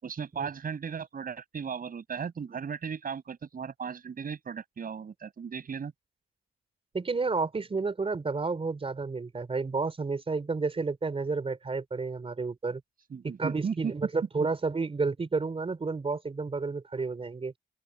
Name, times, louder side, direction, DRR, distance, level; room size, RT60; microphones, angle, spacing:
voice 1, 0.0-5.9 13.1-13.9 14.4-14.5, right 6 dB, 45° right, 6.5 m, -36 dB
voice 2, 6.9-12.8 13.4-17.5, right 4 dB, 30° right, 4.1 m, -31 dB
open air
cardioid pair, 90°, 20 cm